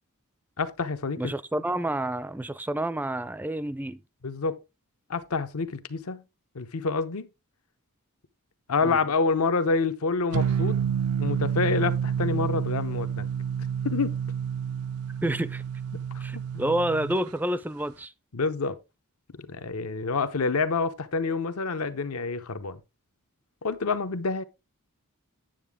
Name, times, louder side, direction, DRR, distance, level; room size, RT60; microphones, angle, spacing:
voice 1, 0.6-1.3 4.2-4.6 5.1-6.2 6.5-7.3 8.7-10.8 11.2-13.3 13.8-14.1 15.9-16.0 16.5-16.6 18.3-18.8 19.4-22.8 23.6-24.4, left 4 dB, 80° left, 0.8 m, -27 dB
voice 2, 1.2-4.0 8.8-9.0 15.2-15.6 16.2-18.1, right 1 dB, 10° right, 0.3 m, -29 dB
sound 1, 10.3-17.2, right 8 dB, 85° right, 0.4 m, -29 dB
9.0 x 7.5 x 3.5 m
head